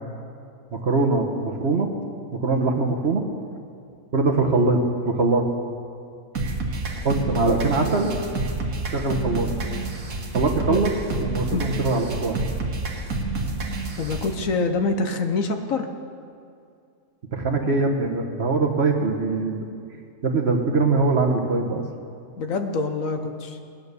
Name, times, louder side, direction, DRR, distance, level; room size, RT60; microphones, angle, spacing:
voice 1, 0.7-1.9 2.3-3.2 4.1-5.4 7.0-8.1 8.9-9.5 10.3-10.9 11.2-12.4 17.3-19.6 20.2-21.8, right 3 dB, 45° right, 3 dB, 1.3 m, -22 dB
sound 1, 6.4-14.3, right 2 dB, 75° right, 1.9 m, -28 dB
voice 2, 14.0-15.9 22.4-23.6, left 3 dB, 60° left, 6 dB, 1.2 m, -25 dB
19.5 x 9.6 x 6.7 m, 2.4 s
omnidirectional pair, 1.7 m